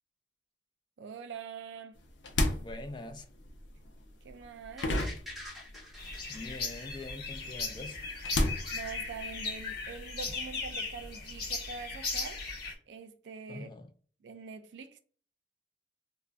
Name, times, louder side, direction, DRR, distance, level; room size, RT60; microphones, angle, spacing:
voice 1, 1.0-1.9 4.2-5.1 8.7-12.4 12.9-13.7 14.2-15.0, right 5 dB, 80° right, 0.4 m, -44 dB
sound 1, 2.0-6.0 6.3-9.6, left 1 dB, 90° left, 0.5 m, -34 dB
voice 2, 2.6-3.3 6.3-8.1 13.5-13.9, left 2 dB, 25° left, 0.3 m, -44 dB
sound 2, 4.8-7.7 8.1-8.2, left 1 dB, ahead, 0.8 m, -47 dB
sound 3, 6.0-12.7, left 3 dB, 60° left, 0.8 m, -37 dB
2.4 x 2.1 x 3.4 m
head